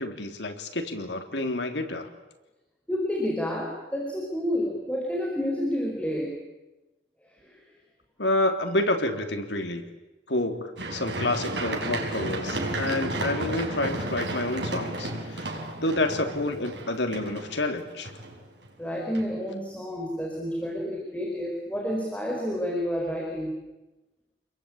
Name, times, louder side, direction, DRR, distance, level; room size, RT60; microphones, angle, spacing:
voice 1, 0.0-2.1 8.2-9.8 10.3-18.1, left 2 dB, 85° left, 5 dB, 3.4 m, -29 dB
voice 2, 2.9-6.3 7.4-7.6 18.8-23.5, equal, 10° left, -2 dB, 5.1 m, -29 dB
Run, 10.8-18.7 19.1-19.2, right 2 dB, 80° right, 5.5 m, -32 dB
28.5 x 22.0 x 8.9 m, 1.0 s
head